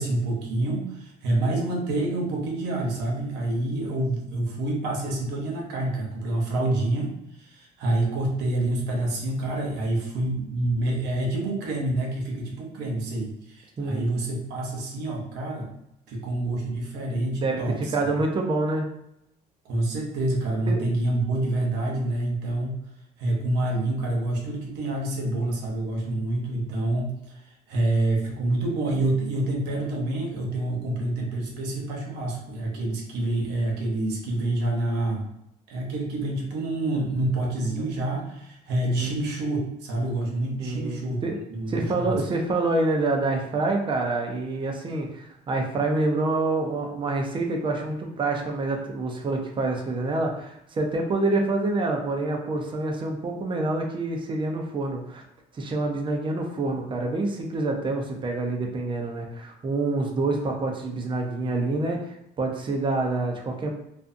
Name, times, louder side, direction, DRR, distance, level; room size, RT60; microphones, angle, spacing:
voice 1, 0.0-15.7 16.1-17.9 19.6-22.7 23.2-35.2 35.7-41.2 41.5-42.2, right 2 dB, 85° right, -1 dB, 0.8 m, -27 dB
voice 2, 13.8-14.1 17.4-18.9 20.7-20.8 39.0-39.1 40.6-41.4 41.7-55.2 55.5-63.7, right 2 dB, 30° right, 2 dB, 0.5 m, -27 dB
2.5 x 2.3 x 2.5 m, 0.81 s
cardioid pair, 110°, 17 cm